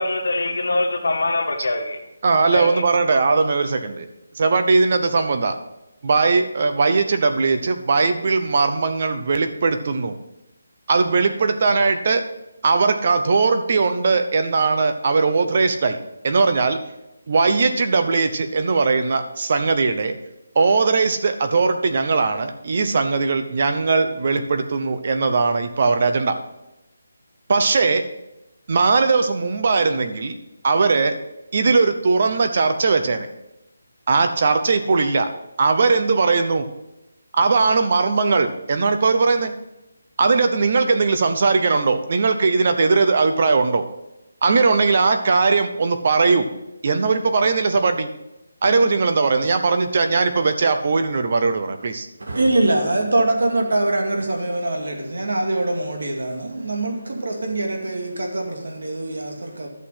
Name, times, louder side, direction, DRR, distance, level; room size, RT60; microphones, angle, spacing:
voice 1, 0.0-2.0 2.5-2.8, left 2 dB, 75° left, 1.9 m, -23 dB
voice 2, 2.2-4.1 4.3-5.6 6.0-10.2 10.9-12.2 12.6-16.0 16.2-16.8 17.3-20.2 20.6-26.4 27.5-28.0 28.7-30.4 30.6-31.1 31.5-33.3 34.1-35.3 35.6-36.6 37.3-39.6 40.2-43.8 44.4-46.5 46.8-48.1 48.6-52.1, right 4 dB, 35° right, 0.8 m, -19 dB
voice 3, 52.2-59.7, right 2 dB, 70° right, 2.3 m, -23 dB
11.5 x 6.7 x 5.7 m
hypercardioid pair, 175°, 0 cm